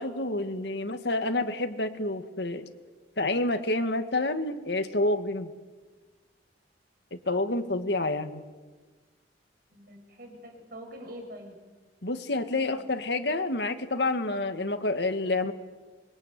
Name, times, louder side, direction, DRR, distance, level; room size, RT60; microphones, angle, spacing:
voice 1, 0.0-2.7 3.2-5.5 7.1-8.4 12.0-15.5, left 2 dB, 70° left, 7 dB, 2.0 m, -28 dB
voice 2, 9.7-11.6 12.7-13.2, equal, 55° right, 3 dB, 6.8 m, -45 dB
25.5 x 23.0 x 9.5 m, 1.3 s
head